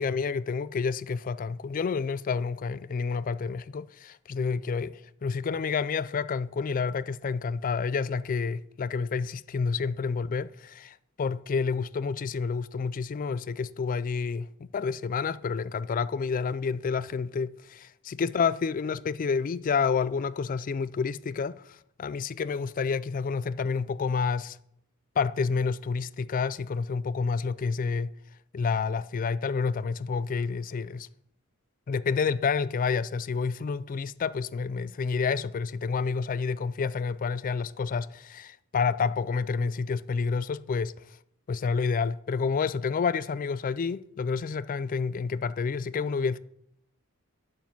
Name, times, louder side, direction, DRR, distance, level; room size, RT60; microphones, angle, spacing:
voice 1, 0.0-14.5 14.7-24.6 25.2-28.1 28.5-31.1 31.9-40.9 41.5-46.4, left 5 dB, 40° left, 0.3 m, -29 dB
10.5 x 7.2 x 5.9 m
head